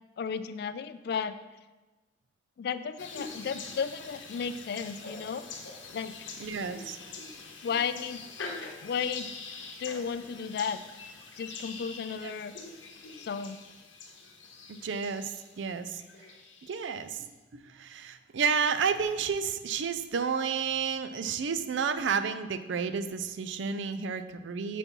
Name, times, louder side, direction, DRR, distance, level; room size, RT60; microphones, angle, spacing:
voice 1, 0.2-1.4 2.6-5.5 5.9-6.2 7.6-8.3 8.8-9.4 9.8-10.8 11.4-12.6 13.2-13.6, left 6 dB, 55° left, 13 dB, 0.3 m, -34 dB
sound 1, 3.0-17.0, left 4 dB, 80° left, 0.8 m, -44 dB
voice 2, 6.4-7.0 12.2-12.4 14.7-16.0 16.6-17.2 17.5-24.8, right 6 dB, 75° right, 11 dB, 0.4 m, -31 dB
5.9 x 4.2 x 5.3 m, 1.2 s
head